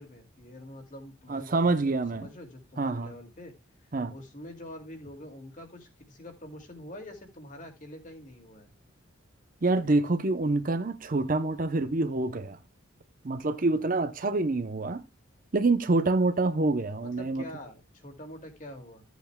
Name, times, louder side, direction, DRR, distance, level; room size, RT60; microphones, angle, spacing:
voice 1, 0.0-3.5 3.8-8.7 17.0-19.0, left 1 dB, 40° left, 2.3 m, -46 dB
voice 2, 1.3-2.3 2.8-3.2 3.9-4.1 9.6-12.6 13.2-15.0 15.5-17.4, right 2 dB, 40° right, 0.7 m, -26 dB
14.0 x 8.1 x 2.2 m
head